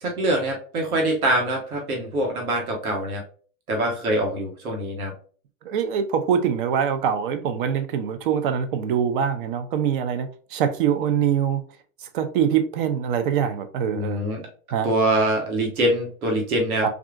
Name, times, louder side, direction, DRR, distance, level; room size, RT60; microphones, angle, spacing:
voice 1, 0.0-3.2 3.7-5.1 13.9-14.4 14.8-16.8, right 1 dB, 85° right, 1.3 m, -24 dB
voice 2, 5.6-11.6 12.1-14.2 14.7-14.9 16.8-16.9, right 8 dB, 40° right, 0.4 m, -24 dB
3.7 x 2.4 x 2.4 m
hypercardioid pair, 145°, 42 cm